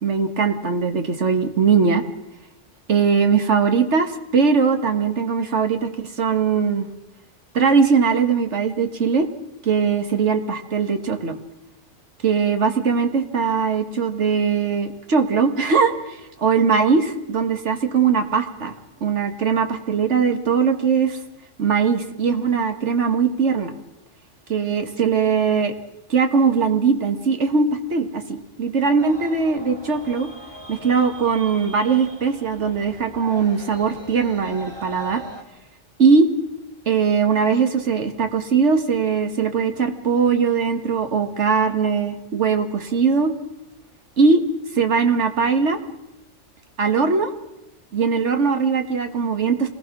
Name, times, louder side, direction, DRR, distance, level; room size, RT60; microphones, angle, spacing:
voice 1, 0.0-2.0 2.9-6.9 7.5-9.3 9.6-11.4 12.2-18.7 19.0-21.2 21.6-23.7 24.5-25.7 26.1-30.3 30.7-35.2 36.0-36.3 36.9-43.3 44.2-44.4 44.7-45.8 46.8-47.3 47.9-49.7, right 5 dB, 70° right, 6 dB, 1.9 m, -20 dB
sound 1, 29.0-35.4, right 1 dB, 20° right, 2.0 m, -41 dB
26.0 x 19.0 x 6.1 m, 0.93 s
omnidirectional pair, 1.2 m